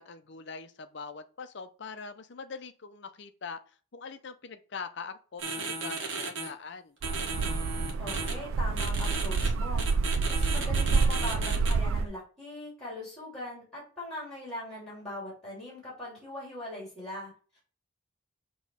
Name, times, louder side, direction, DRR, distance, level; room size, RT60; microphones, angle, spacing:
voice 1, 0.0-3.6 3.9-7.0, left 5 dB, 60° left, 0.6 m, -42 dB
sound 1, 5.4-6.5 7.0-8.3 8.8-9.5 9.8-11.7, right 3 dB, 65° right, 1.5 m, -35 dB
sound 2, 7.0-12.0, right 4 dB, 80° right, 0.4 m, -28 dB
voice 2, 8.0-9.9 10.3-17.6, left 1 dB, 5° left, 3.1 m, -41 dB
6.2 x 3.1 x 5.5 m
head